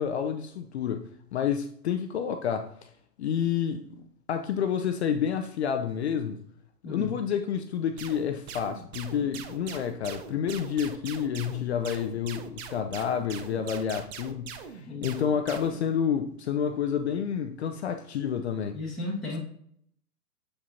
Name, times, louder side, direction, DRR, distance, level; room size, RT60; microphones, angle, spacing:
voice 1, 0.0-2.9 3.2-3.9 4.3-6.4 6.8-18.8, left 8 dB, 45° left, 0.5 m, -29 dB
voice 2, 6.8-7.2 14.9-15.2 18.7-19.4, left 2 dB, ahead, 1.2 m, -34 dB
sound 1, 8.0-15.8, right 7 dB, 40° right, 0.7 m, -42 dB
7.3 x 4.9 x 2.7 m
hypercardioid pair, 120°, 50 cm